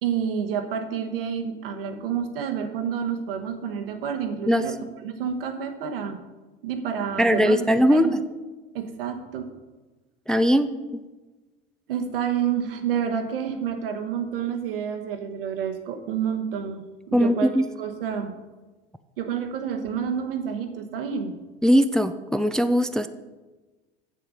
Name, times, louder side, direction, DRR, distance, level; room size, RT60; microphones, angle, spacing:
voice 1, 0.0-6.2 6.6-7.6 7.9-8.2 8.7-9.5 11.9-18.3 19.2-21.4, right 7 dB, 75° right, 5 dB, 1.2 m, -29 dB
voice 2, 7.2-8.2 10.3-10.7 17.1-17.6 21.6-23.1, equal, ahead, 10 dB, 0.4 m, -20 dB
7.8 x 7.5 x 5.3 m, 1.2 s
hypercardioid pair, 70°, 29 cm